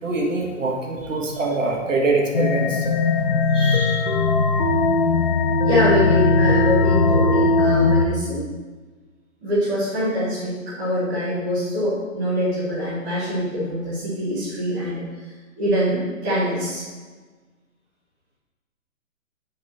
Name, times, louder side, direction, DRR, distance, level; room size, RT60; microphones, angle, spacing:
voice 1, 0.0-2.8 3.5-4.2, right 3 dB, 65° right, 1 dB, 1.7 m, -24 dB
sound 1, 2.3-8.1, left 3 dB, 35° left, 0.5 m, -19 dB
voice 2, 5.6-8.4 9.4-15.0 15.6-16.8, left 1 dB, 5° right, -13 dB, 0.7 m, -24 dB
7.9 x 4.7 x 4.1 m, 1.4 s
hypercardioid pair, 175°, 41 cm